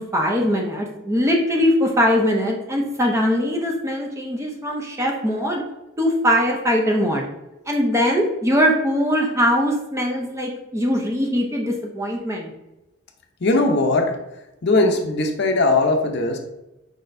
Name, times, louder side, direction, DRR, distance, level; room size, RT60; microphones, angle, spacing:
voice 1, 0.0-5.6 6.0-7.3 7.7-12.5, equal, 15° right, 0 dB, 0.6 m, -21 dB
voice 2, 13.4-14.2 14.6-16.4, left 2 dB, 50° left, 3 dB, 0.6 m, -19 dB
5.0 x 4.1 x 2.6 m, 0.97 s
head